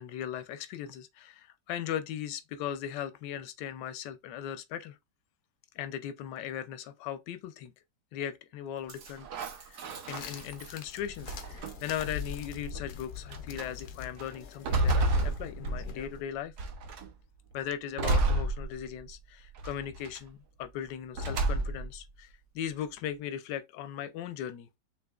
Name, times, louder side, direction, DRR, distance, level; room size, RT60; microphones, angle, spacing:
voice 1, 0.0-5.0 5.7-7.7 8.1-9.3 9.7-16.5 17.5-24.7, left 10 dB, 90° left, 1.2 m, -38 dB
sound 1, 8.9-10.8 11.3-12.0 12.8-12.9 13.3-13.7 14.2-16.1 16.6-17.1 18.0-19.1 19.6-20.2 21.1-22.0, right 2 dB, 70° right, 1.4 m, -30 dB
sound 2, 10.1-16.2, left 7 dB, 70° left, 1.2 m, -43 dB
5.9 x 3.0 x 2.3 m
omnidirectional pair, 1.8 m